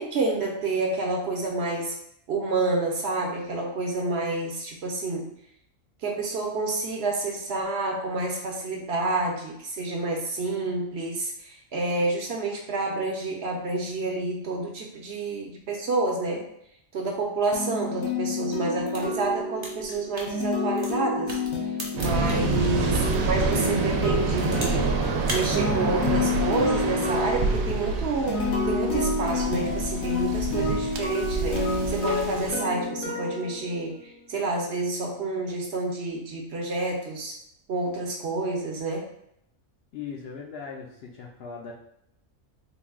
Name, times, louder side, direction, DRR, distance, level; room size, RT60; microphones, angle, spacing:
voice 1, 0.0-2.0 2.3-5.3 6.0-16.4 16.9-21.4 21.9-24.9 25.3-37.3 37.7-39.1, right 2 dB, 60° right, 0 dB, 0.9 m, -29 dB
sound 1, 17.5-34.2, left 3 dB, 80° left, 1.2 m, -29 dB
sound 2, 18.8-23.1 23.6-24.9 25.2-25.5, right 1 dB, 25° right, 0.7 m, -37 dB
Waves surf, 22.0-32.5, right 4 dB, 90° right, 1.0 m, -28 dB
voice 2, 39.9-41.7, left 6 dB, 60° left, -2 dB, 0.7 m, -39 dB
3.9 x 2.3 x 3.5 m, 0.75 s
omnidirectional pair, 1.4 m